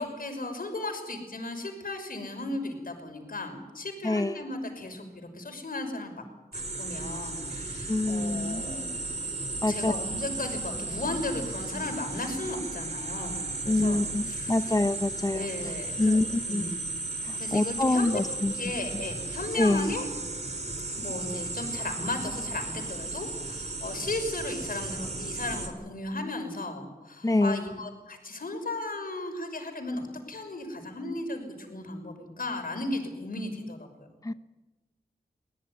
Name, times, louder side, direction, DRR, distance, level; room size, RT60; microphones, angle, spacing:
voice 1, 0.0-6.1 6.5-9.0 9.7-14.6 15.3-16.2 16.5-16.7 17.4-20.1 20.9-33.9, left 2 dB, 60° left, 6 dB, 5.9 m, -35 dB
voice 2, 4.0-4.4 7.9-8.6 9.6-9.9 13.7-15.5 16.0-16.7 17.2-18.5 19.6-19.9 27.2-27.6 34.2-34.3, left 2 dB, 20° left, 11 dB, 0.8 m, -26 dB
sound 1, 6.5-25.7, right 2 dB, 45° right, 4.8 m, -35 dB
22.5 x 17.0 x 9.8 m, 1.1 s
cardioid pair, 50°, 16 cm